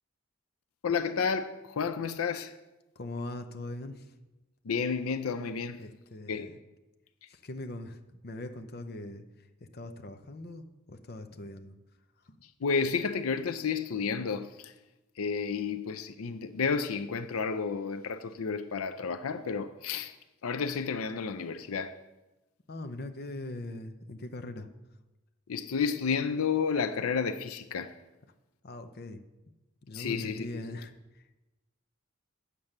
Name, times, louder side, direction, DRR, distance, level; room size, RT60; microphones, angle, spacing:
voice 1, 0.8-2.5 4.6-5.8 6.3-6.5 12.6-14.7 15.2-20.1 20.4-22.0 25.5-28.0 29.9-30.6, left 5 dB, 90° left, 0.5 m, -31 dB
voice 2, 3.0-4.1 5.8-6.6 7.3-9.2 9.7-11.8 12.3-12.4 22.7-24.7 28.6-29.2 29.8-31.3, left 2 dB, 45° left, 0.7 m, -41 dB
8.3 x 7.4 x 6.5 m
head